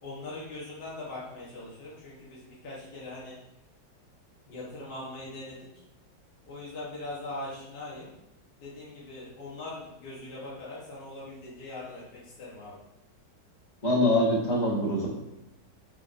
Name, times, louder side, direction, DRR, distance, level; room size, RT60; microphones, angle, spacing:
voice 1, 0.0-3.4 4.5-5.8 6.4-8.1 8.6-12.8, left 2 dB, 70° left, -7 dB, 1.8 m, -41 dB
voice 2, 13.8-15.1, left 1 dB, 25° left, -4 dB, 1.1 m, -24 dB
5.3 x 3.8 x 2.5 m, 0.90 s
omnidirectional pair, 2.0 m